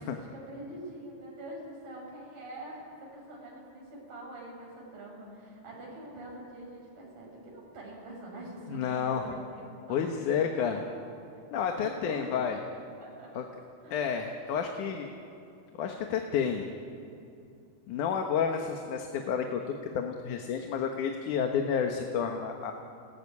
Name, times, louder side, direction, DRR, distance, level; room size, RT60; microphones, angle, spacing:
voice 1, 0.0-9.6 9.9-10.8 11.5-12.3 13.0-13.4 13.8-14.1, right 1 dB, 85° right, -3 dB, 8.4 m, -45 dB
voice 2, 8.7-9.3 9.9-10.8 11.5-12.6 13.3-13.4 13.9-15.1 15.8-16.7 17.9-22.7, left 7 dB, 70° left, 4 dB, 2.7 m, -30 dB
28.0 x 19.0 x 9.7 m, 2.6 s
omnidirectional pair, 3.9 m